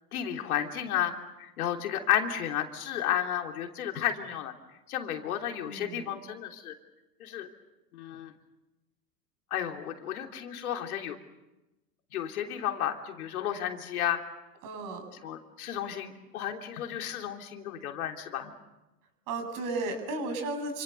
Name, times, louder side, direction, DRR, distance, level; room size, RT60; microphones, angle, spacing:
voice 1, 0.1-1.1 1.4-4.5 4.9-6.7 7.2-7.5 7.9-8.3 9.5-11.2 12.1-14.2 15.2-18.5, left 10 dB, 60° left, 4 dB, 3.3 m, -32 dB
voice 2, 5.6-6.2 14.6-15.0 19.3-20.8, right 2 dB, 40° right, 6 dB, 8.0 m, -34 dB
28.5 x 27.5 x 6.9 m, 1.0 s
figure-of-eight pair, 95°, 48 cm